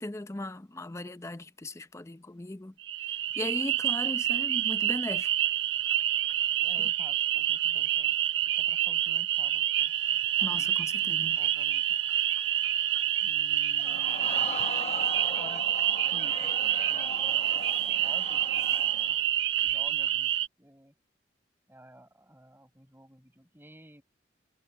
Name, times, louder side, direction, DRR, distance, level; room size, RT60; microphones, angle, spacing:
voice 1, 0.0-2.7 3.1-5.3 10.4-11.4, left 1 dB, 15° left, 0.6 m, -38 dB
sound 1, 2.8-20.5, right 12 dB, 85° right, 0.6 m, -28 dB
voice 2, 6.6-8.2 8.4-10.7 11.4-12.0 13.2-14.8 15.4-15.7 16.1-18.8 19.1-19.2 19.6-20.3 20.6-20.9 21.7-24.0, right 1 dB, 10° right, 7.1 m, -53 dB
sound 2, 9.8-14.8, left 10 dB, 90° left, 6.8 m, -49 dB
Crowd, 13.8-19.2 19.7-19.8, left 5 dB, 35° left, 1.0 m, -40 dB
head